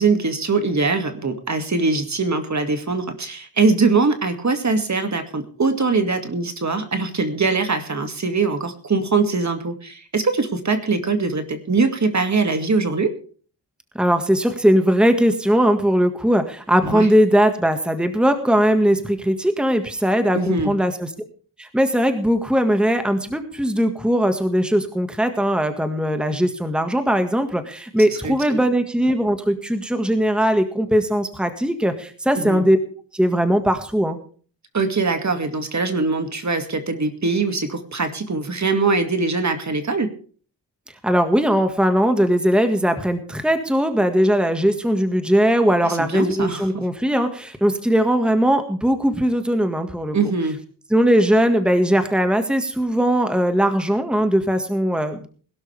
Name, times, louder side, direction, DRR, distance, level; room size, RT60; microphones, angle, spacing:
voice 1, 0.0-13.1 16.8-17.1 20.3-20.7 28.2-28.6 32.3-32.6 34.7-40.1 45.8-46.9 50.1-50.6, right 4 dB, 40° right, 7 dB, 2.4 m, -22 dB
voice 2, 14.0-21.1 21.6-32.8 33.1-34.2 41.0-50.2 50.9-55.3, equal, ahead, 7 dB, 1.8 m, -19 dB
21.0 x 12.5 x 3.5 m, 0.43 s
cardioid pair, 90°, 43 cm